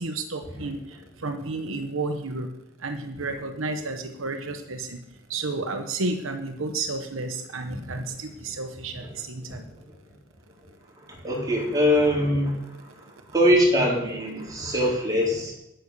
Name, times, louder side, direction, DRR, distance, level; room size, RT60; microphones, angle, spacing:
voice 1, 0.0-2.5 2.8-5.0 5.3-9.6, right 3 dB, 85° right, 5 dB, 1.2 m, -31 dB
voice 2, 11.1-12.8 13.3-15.5, equal, 20° right, -4 dB, 4.2 m, -22 dB
9.7 x 9.2 x 6.8 m, 0.87 s
head